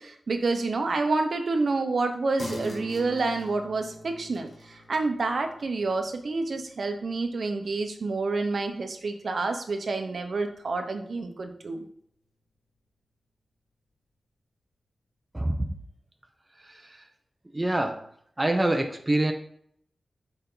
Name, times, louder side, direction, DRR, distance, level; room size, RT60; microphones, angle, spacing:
voice 1, 0.0-11.8, right 3 dB, 65° right, 5 dB, 0.9 m, -28 dB
sound 1, 2.4-9.4 9.8-9.9, left 1 dB, 55° left, 1.3 m, -44 dB
voice 2, 15.3-15.7 16.7-17.0 17.5-18.1 18.4-19.3, right 1 dB, 15° right, 4 dB, 0.8 m, -26 dB
6.7 x 5.4 x 3.9 m, 0.65 s
wide cardioid pair, 100°, 0 cm